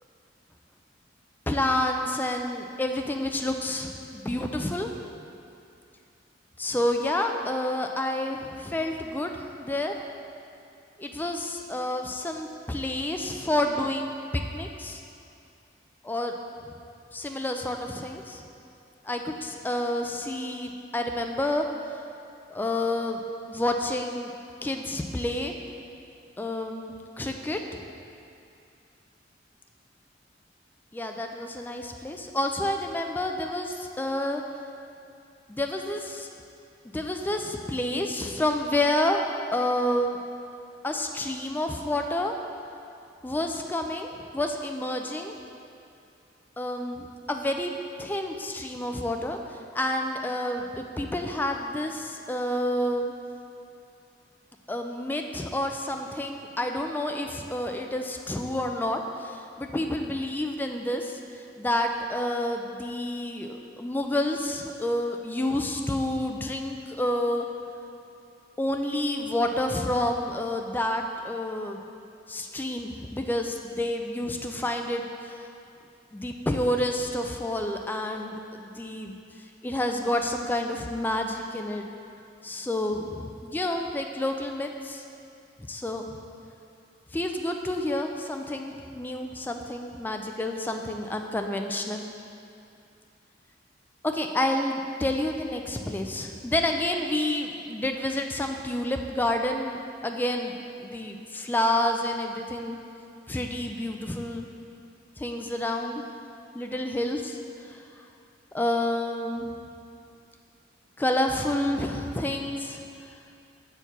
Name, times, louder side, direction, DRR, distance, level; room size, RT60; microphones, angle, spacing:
voice 1, 1.5-4.9 6.6-10.0 11.0-14.1 14.5-15.0 16.0-16.3 17.1-18.4 19.0-22.0 22.5-23.2 23.5-24.3 24.6-25.5 26.4-27.8 30.9-34.4 35.5-36.3 36.9-39.2 39.5-40.2 40.8-42.3 43.2-45.4 46.6-47.7 48.0-53.1 54.7-67.5 68.6-71.8 72.3-75.4 76.1-79.2 79.6-81.9 82.4-85.0 85.7-86.0 87.1-92.0 94.0-102.8 103.3-104.5 105.2-106.0 106.5-108.0 108.5-109.5 111.0-112.8, left 1 dB, 10° left, 3 dB, 0.3 m, -29 dB
6.7 x 4.5 x 5.8 m, 2.6 s
head